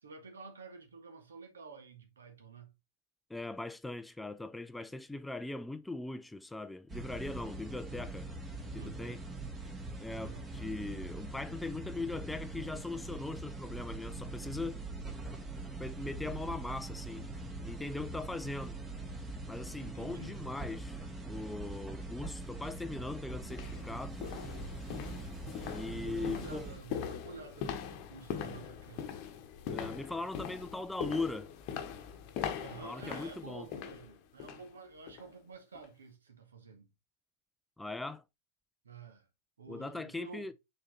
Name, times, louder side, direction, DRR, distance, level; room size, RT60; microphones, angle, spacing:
voice 1, 0.0-2.7 8.6-9.4 10.1-10.4 19.7-20.4 25.8-29.0 32.5-36.9 38.8-39.3 39.6-40.5, right 4 dB, 70° right, 1.6 m, -50 dB
voice 2, 3.3-8.3 8.7-9.2 9.6-9.7 10.0-14.8 15.7-17.2 17.6-18.8 19.5-21.0 21.3-24.2 25.7-26.7 29.7-31.5 32.8-33.7 37.8-38.2 39.7-40.5, left 3 dB, 5° left, 0.4 m, -40 dB
sound 1, 6.9-26.8, right 2 dB, 15° right, 1.5 m, -43 dB
sound 2, 22.8-22.9 23.4-34.7 35.1-35.3 35.8-35.9, left 8 dB, 45° left, 1.0 m, -42 dB
6.1 x 4.3 x 4.1 m
figure-of-eight pair, 90°, 0 cm